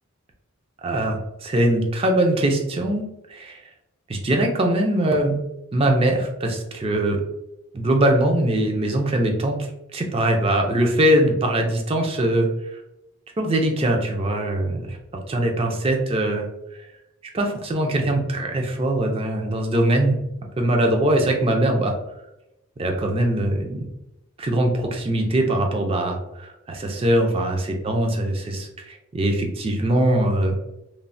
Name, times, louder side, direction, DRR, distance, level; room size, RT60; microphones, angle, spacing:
voice 1, 0.8-3.0 3.3-3.6 4.1-5.4 5.7-7.2 7.7-9.6 9.9-12.5 13.4-15.0 15.3-16.5 17.3-20.2 20.6-21.9 22.8-23.8 24.4-27.6 27.8-30.6, right 1 dB, 25° right, 2 dB, 0.3 m, -21 dB
3.1 x 2.0 x 2.5 m, 0.89 s
head